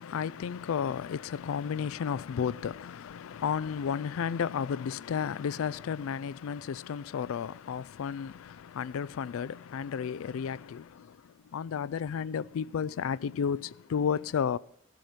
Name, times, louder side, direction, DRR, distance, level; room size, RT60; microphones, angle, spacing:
voice 1, 0.0-11.2 11.5-14.6, left 7 dB, 90° left, 0.3 m, -32 dB
15.0 x 7.5 x 5.2 m
head